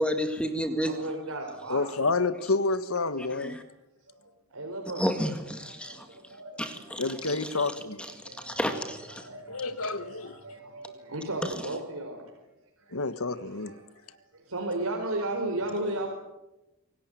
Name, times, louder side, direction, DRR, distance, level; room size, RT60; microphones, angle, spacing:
voice 1, 0.0-0.9 3.4-3.6 5.0-6.1 6.6-7.7 8.0-9.3, equal, 5° left, 2.0 m, -31 dB
voice 2, 0.7-1.9 4.0-5.1 5.6-7.4 7.6-8.6 9.1-12.2 12.8-13.0 13.3-16.1, right 2 dB, 85° right, 4.5 m, -36 dB
voice 3, 1.7-3.6 7.0-8.0 9.5-10.4 12.9-13.7, left 3 dB, 80° left, 1.5 m, -29 dB
27.0 x 18.0 x 9.2 m
head